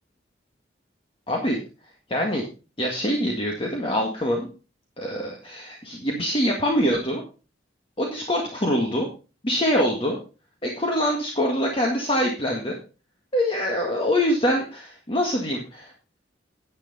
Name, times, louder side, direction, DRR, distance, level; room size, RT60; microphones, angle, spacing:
voice 1, 1.3-1.6 2.1-2.5 2.8-4.5 5.0-7.2 8.0-9.1 9.4-10.2 10.6-12.8 13.3-15.9, equal, 30° left, 0 dB, 1.7 m, -24 dB
10.5 x 8.5 x 4.1 m, 0.33 s
head